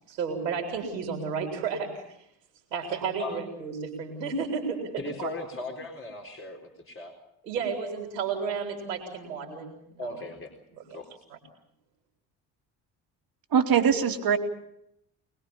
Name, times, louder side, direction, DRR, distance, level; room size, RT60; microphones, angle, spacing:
voice 1, 0.1-2.0 2.7-5.3 7.4-9.7 11.3-11.4, right 5 dB, 80° right, 2 dB, 3.8 m, -32 dB
voice 2, 5.0-7.2 10.0-10.5 10.9-11.2, left 2 dB, 25° left, 0 dB, 4.0 m, -38 dB
voice 3, 13.5-14.4, right 7 dB, 45° right, 5 dB, 2.7 m, -22 dB
24.0 x 20.5 x 7.2 m, 0.79 s
figure-of-eight pair, 45°, 49 cm